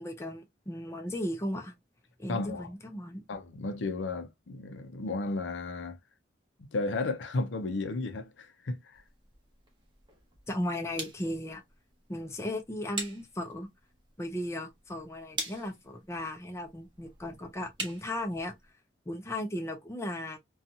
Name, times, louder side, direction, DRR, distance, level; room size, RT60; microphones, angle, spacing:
voice 1, 0.0-1.7 2.2-3.2 10.5-11.6 12.1-13.7 14.2-18.5 19.1-20.4, left 1 dB, 15° left, 0.5 m, -36 dB
voice 2, 2.3-2.7 3.3-6.0 6.7-9.0, left 3 dB, 85° left, 0.5 m, -33 dB
sound 1, 8.9-18.7, right 3 dB, 25° right, 0.8 m, -45 dB
2.7 x 2.3 x 2.6 m
head